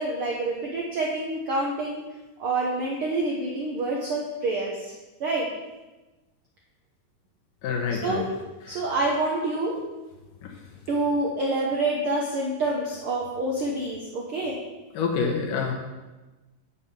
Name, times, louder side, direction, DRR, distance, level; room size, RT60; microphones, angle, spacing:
voice 1, 0.0-2.0 2.4-4.9 5.2-5.5 8.0-8.2 8.7-9.8 10.9-14.6, right 2 dB, 70° right, -2 dB, 1.3 m, -27 dB
voice 2, 7.6-8.3 8.7-8.8 10.4-10.6 14.9-15.7, left 5 dB, 80° left, 1 dB, 2.8 m, -27 dB
7.2 x 5.6 x 7.1 m, 1.1 s
omnidirectional pair, 3.9 m